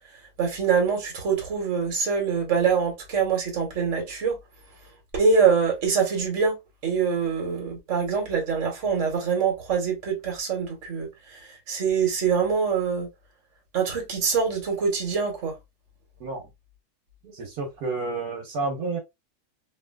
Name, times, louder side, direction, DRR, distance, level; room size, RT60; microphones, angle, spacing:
voice 1, 0.4-4.4 5.1-6.6 6.8-13.1 13.7-15.5, right 6 dB, 55° right, 1.4 m, -24 dB
voice 2, 17.2-19.0, right 3 dB, 80° right, 1.4 m, -30 dB
2.9 x 2.7 x 2.3 m
omnidirectional pair, 1.6 m